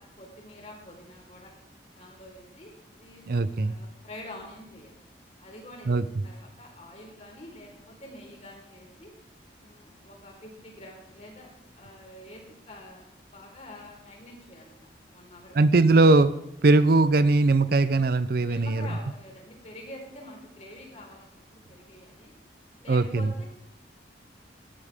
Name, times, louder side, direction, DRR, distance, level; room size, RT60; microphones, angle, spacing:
voice 1, 0.0-1.5 1.9-2.7 3.0-5.0 5.4-9.1 9.6-11.5 11.7-15.6 18.4-22.3 22.8-23.5, left 1 dB, 35° left, -1 dB, 4.2 m, -47 dB
voice 2, 3.3-3.7 5.9-6.0 15.6-16.3 16.6-18.9 22.9-23.3, right 3 dB, 55° right, 15 dB, 0.5 m, -20 dB
17.5 x 12.5 x 3.6 m, 0.86 s
head